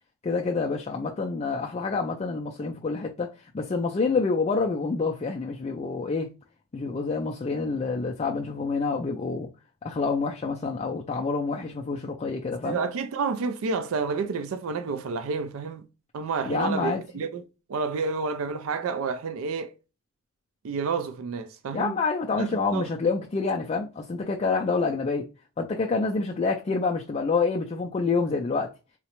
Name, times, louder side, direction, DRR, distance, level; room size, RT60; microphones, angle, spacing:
voice 1, 0.2-3.3 3.5-6.3 6.7-9.5 9.8-12.8 16.5-17.0 21.7-25.3 25.6-28.7, left 4 dB, 30° left, 0.3 m, -27 dB
voice 2, 12.6-15.8 16.1-17.4 17.7-19.7 20.6-21.9 22.4-22.9, right 5 dB, 65° right, 0.4 m, -30 dB
3.7 x 2.1 x 2.9 m
head